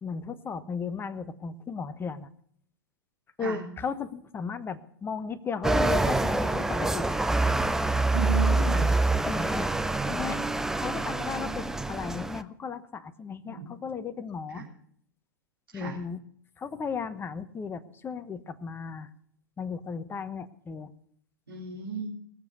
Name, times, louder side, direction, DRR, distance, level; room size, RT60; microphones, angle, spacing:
voice 1, 0.0-2.3 3.4-7.1 9.2-9.7 10.0-10.4 10.7-14.7 15.7-16.2 16.6-19.1 19.6-20.9, left 5 dB, 20° left, 12 dB, 1.0 m, -35 dB
sound 1, 5.6-12.4, right 2 dB, 5° right, 0.5 m, -26 dB
voice 2, 8.1-8.9 13.4-13.7 14.5-14.6 15.7-16.0 21.5-22.1, right 4 dB, 85° right, -6 dB, 3.7 m, -34 dB
20.0 x 7.2 x 6.7 m, 0.64 s
figure-of-eight pair, 100°, 12 cm